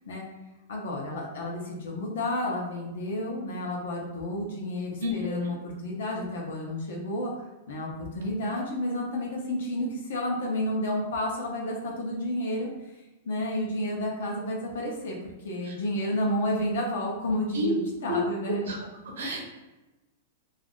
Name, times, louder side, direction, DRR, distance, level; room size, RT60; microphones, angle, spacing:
voice 1, 0.7-7.3 7.7-12.7 13.2-15.2 15.4-18.6, left 1 dB, 80° left, -1 dB, 0.7 m, -31 dB
voice 2, 5.0-5.4 15.7-15.8 17.5-17.7 18.1-18.2 18.6-18.8 19.2-19.4, equal, 85° right, 0 dB, 0.9 m, -30 dB
3.2 x 2.4 x 2.4 m, 1.1 s
hypercardioid pair, 135°, 0 cm